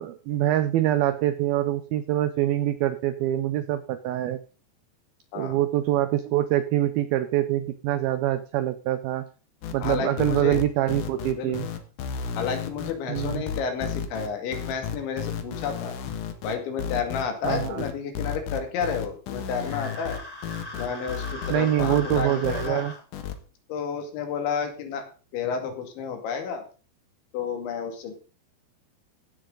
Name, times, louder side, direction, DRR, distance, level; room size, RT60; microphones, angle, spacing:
voice 1, 0.0-4.4 5.4-9.2 9.7-11.7 13.1-13.4 17.4-17.9 21.5-22.9, right 13 dB, 85° right, 12 dB, 2.1 m, -25 dB
sound 1, 9.6-22.7 23.1-23.4, left 7 dB, 65° left, 2.2 m, -33 dB
voice 2, 9.8-10.6 11.3-11.5 12.4-16.0 16.4-20.2 20.7-22.8 23.7-25.0 25.3-26.6 27.3-28.1, left 6 dB, 85° left, 5 dB, 4.5 m, -31 dB
sound 2, 19.5-23.0, left 1 dB, 10° left, 2.8 m, -40 dB
15.5 x 10.0 x 3.8 m, 0.36 s
omnidirectional pair, 5.2 m